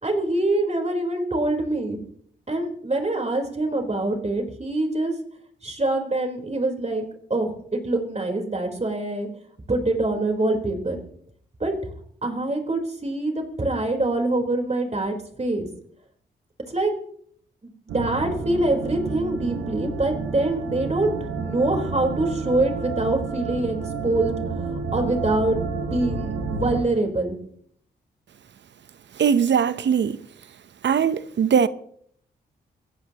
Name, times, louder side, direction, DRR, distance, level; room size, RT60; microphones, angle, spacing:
voice 1, 0.0-2.0 2.5-5.1 5.6-7.0 7.3-9.3 9.7-11.0 11.6-11.9 12.2-15.7 16.7-16.9 17.6-21.1 21.4-27.4, right 2 dB, 35° right, 4.1 m, -25 dB
sound 1, 17.9-26.8, right 4 dB, 90° right, 1.6 m, -30 dB
voice 2, 29.2-30.2 30.8-31.7, right 7 dB, 65° right, 0.9 m, -20 dB
23.5 x 15.5 x 3.0 m
supercardioid pair, 40°, 20 cm